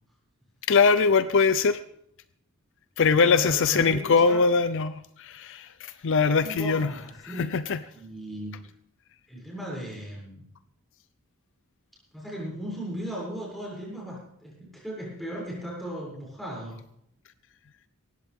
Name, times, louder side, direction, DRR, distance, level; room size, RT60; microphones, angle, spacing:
voice 1, 0.7-1.8 3.0-6.9 7.4-7.8, left 5 dB, 60° left, 13 dB, 0.5 m, -22 dB
voice 2, 3.2-4.4 6.2-7.5 7.9-8.5 9.3-10.4 12.1-16.8, right 1 dB, ahead, -5 dB, 7.0 m, -37 dB
18.5 x 15.5 x 3.6 m, 0.73 s
head